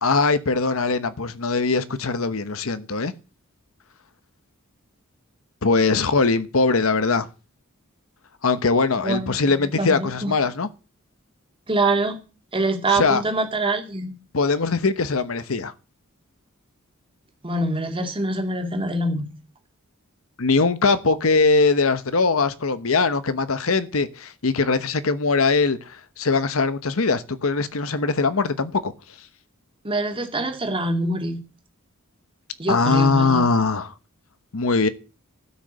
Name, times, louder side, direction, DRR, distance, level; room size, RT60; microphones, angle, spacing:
voice 1, 0.0-3.1 5.6-7.3 8.4-10.7 12.9-13.2 14.3-15.7 20.4-28.9 32.7-33.9 34.5-34.9, left 4 dB, 70° left, 1.0 m, -21 dB
voice 2, 9.0-10.4 11.7-12.2 12.5-14.1 17.4-19.3 29.8-31.4 32.6-33.5, right 2 dB, 25° right, 2.3 m, -25 dB
12.5 x 6.5 x 8.1 m
head